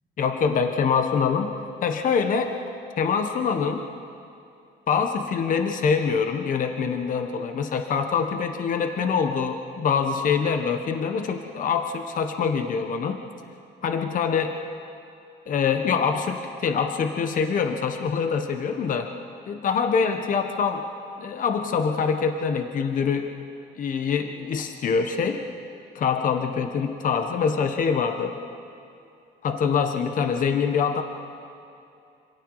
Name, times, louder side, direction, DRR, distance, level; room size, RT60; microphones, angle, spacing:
voice 1, 0.2-1.5 1.8-2.5 3.0-3.9 4.9-13.2 13.8-14.6 15.5-19.1 19.5-20.8 21.2-23.3 23.8-25.4 25.9-28.3 29.4-31.0, left 6 dB, 45° left, 5 dB, 1.3 m, -24 dB
27.0 x 27.0 x 4.9 m, 2.6 s
cardioid pair, 165°, 19 cm